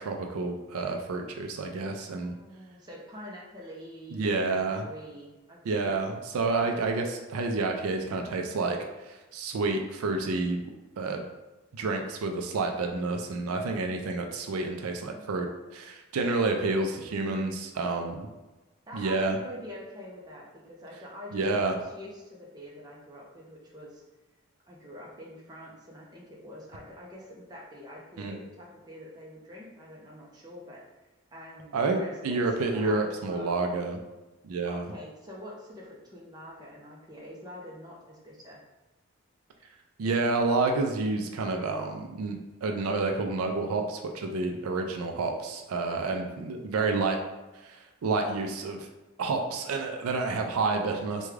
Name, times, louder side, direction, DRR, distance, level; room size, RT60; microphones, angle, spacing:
voice 1, 0.0-2.3 4.1-4.9 5.6-8.8 9.0-11.2 11.7-15.5 15.7-18.3 18.9-19.4 21.3-21.8 28.2-28.3 31.7-34.0 34.4-34.9 40.0-47.2 47.6-48.9 49.2-51.3, right 3 dB, 90° right, 4 dB, 0.4 m, -29 dB
voice 2, 2.0-5.9 6.6-6.8 14.8-15.4 18.9-24.0 24.7-30.8 31.3-33.5 34.7-38.6 45.8-46.2, equal, 20° right, -4 dB, 0.6 m, -45 dB
3.5 x 2.3 x 3.2 m, 1.1 s
head